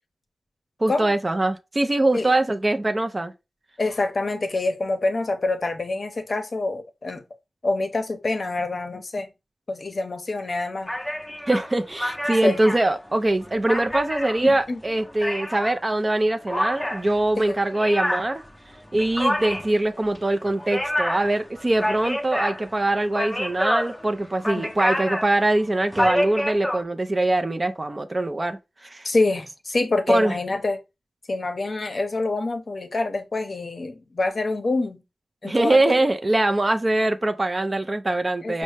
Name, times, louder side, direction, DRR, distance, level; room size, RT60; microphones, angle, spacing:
voice 1, 0.8-3.3 11.5-18.4 18.9-29.1 30.1-30.3 35.4-38.6, right 2 dB, 30° right, 0.4 m, -23 dB
voice 2, 3.8-7.2 7.6-9.3 9.7-10.9 12.4-12.6 14.4-14.8 17.4-17.6 24.5-24.7 29.0-30.8 31.3-35.0 35.4-35.9 38.4-38.6, left 2 dB, 50° left, 0.7 m, -26 dB
sound 1, 10.9-15.8 16.5-26.8, equal, 5° left, 0.7 m, -28 dB
5.3 x 2.1 x 3.3 m
wide cardioid pair, 75°, 0 cm